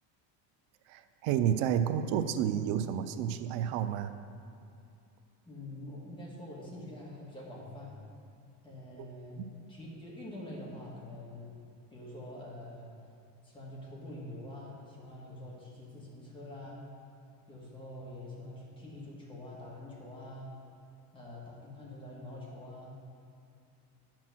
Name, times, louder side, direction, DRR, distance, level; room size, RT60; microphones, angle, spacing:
voice 1, 0.9-4.1 9.4-9.5, right 9 dB, 85° right, 10 dB, 0.6 m, -30 dB
voice 2, 5.5-7.9 8.6-9.4 9.7-11.5 11.9-12.9 13.4-16.8 17.5-20.5 21.1-23.0, left 1 dB, 10° left, -5 dB, 1.7 m, -45 dB
9.5 x 6.1 x 6.1 m, 2.5 s
cardioid pair, 170°, 43 cm